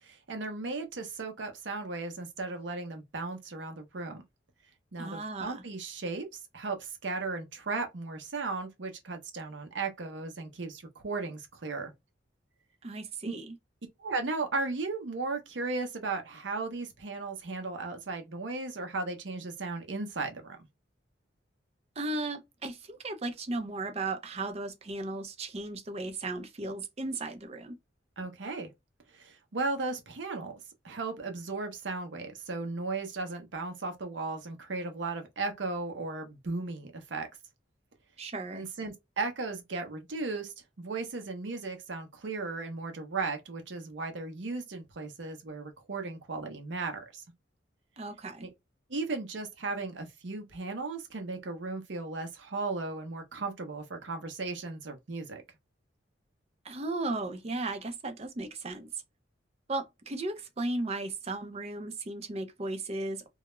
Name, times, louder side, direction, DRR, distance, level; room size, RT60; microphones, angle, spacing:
voice 1, 0.0-4.2 4.9-6.3 6.5-11.9 13.3-13.4 14.0-20.6 28.2-28.7 29.1-30.6 30.8-37.3 38.5-47.2 48.4-48.5 48.9-55.4, right 3 dB, 70° right, 0.7 m, -36 dB
voice 2, 5.0-5.6 12.8-13.6 22.0-27.8 38.2-38.7 48.0-48.5 56.6-58.9 59.7-63.3, right 2 dB, 35° right, 0.5 m, -35 dB
2.3 x 2.1 x 3.0 m
head